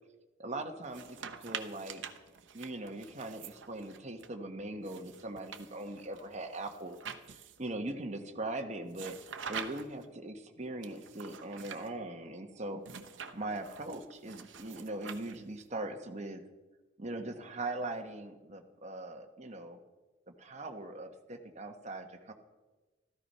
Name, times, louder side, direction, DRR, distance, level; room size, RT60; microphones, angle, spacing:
voice 1, 0.4-2.0 2.5-7.0 7.3-9.2 9.5-12.8 13.3-16.4 17.0-19.8 20.3-22.3, right 2 dB, 35° right, 4 dB, 1.2 m, -40 dB
sound 1, 0.8-4.3 4.8-7.7 8.9-10.1 10.8-11.9 12.8-15.6, right 7 dB, 70° right, 0.9 m, -46 dB
13.5 x 13.5 x 5.5 m, 1.2 s
head